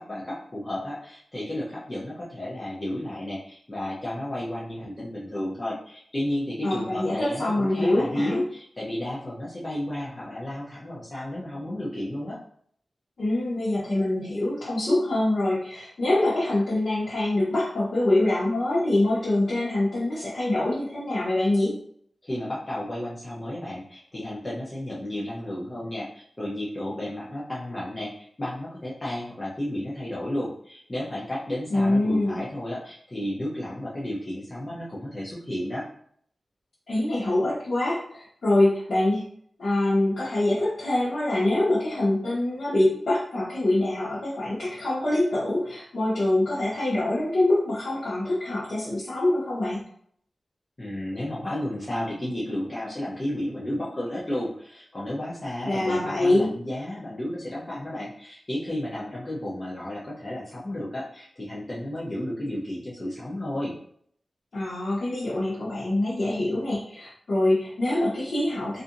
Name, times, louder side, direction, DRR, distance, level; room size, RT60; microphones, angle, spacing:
voice 1, 0.0-12.4 22.2-35.8 50.8-63.7, left 1 dB, 30° left, -7 dB, 0.7 m, -32 dB
voice 2, 6.6-8.4 13.2-21.8 31.7-32.4 36.9-39.2 39.6-49.8 55.6-56.5 64.5-68.8, left 1 dB, 70° left, -10 dB, 0.9 m, -24 dB
2.7 x 2.5 x 2.5 m, 0.63 s
wide cardioid pair, 105°, 0 cm